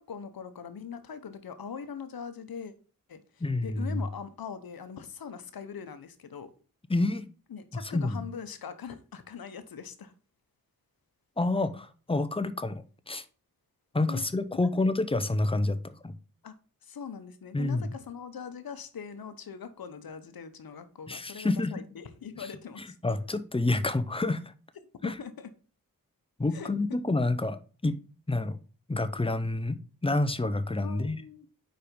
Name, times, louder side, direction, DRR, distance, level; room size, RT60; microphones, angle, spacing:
voice 1, 0.0-2.7 3.1-6.5 7.5-10.1 14.1-14.3 14.6-14.8 16.4-16.6 16.8-22.9 25.0-25.5 26.5-27.0 30.8-31.5, left 6 dB, 75° left, 0.9 m, -42 dB
voice 2, 3.4-4.0 6.9-7.3 7.9-8.3 11.4-13.2 13.9-16.1 17.5-17.9 21.1-21.7 23.0-24.4 25.0-25.1 26.4-28.0 28.3-28.6 28.9-29.8 30.0-31.2, left 2 dB, 15° left, 0.8 m, -28 dB
5.0 x 4.4 x 5.1 m
cardioid pair, 45°, 36 cm